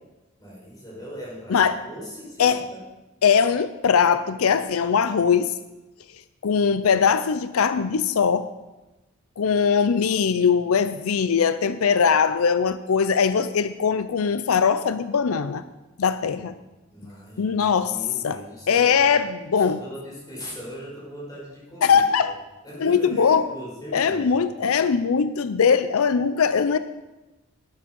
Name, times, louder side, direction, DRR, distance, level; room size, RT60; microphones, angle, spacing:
voice 1, 0.4-2.8 16.3-16.4 16.9-19.2 19.6-22.3 22.6-24.5, equal, 20° left, -6 dB, 5.2 m, -39 dB
voice 2, 3.2-5.5 6.4-8.5 9.4-15.6 16.0-16.5 17.4-17.9 18.2-18.4 18.7-19.8 21.8-22.3 22.8-23.5 23.9-26.8, left 6 dB, 90° left, 12 dB, 0.5 m, -21 dB
12.5 x 10.5 x 5.3 m, 1.1 s
head